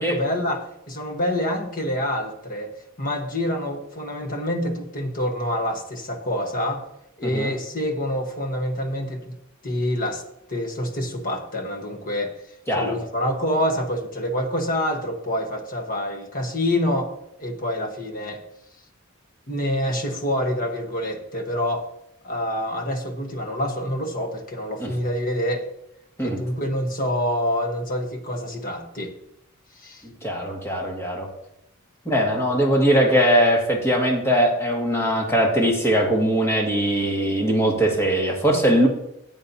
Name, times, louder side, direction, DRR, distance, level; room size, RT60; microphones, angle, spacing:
voice 1, 0.0-2.7 3.0-6.8 7.2-9.3 9.6-10.2 10.5-12.3 12.8-17.1 17.4-18.4 19.5-21.9 22.2-25.7 26.2-29.2 29.8-30.0, left 1 dB, 40° left, 4 dB, 1.3 m, -26 dB
voice 2, 7.2-7.5 12.7-13.0 24.8-24.9 26.2-26.4 30.0-31.3 32.1-38.9, equal, 10° left, -1 dB, 2.0 m, -21 dB
14.0 x 8.5 x 2.8 m, 0.81 s
head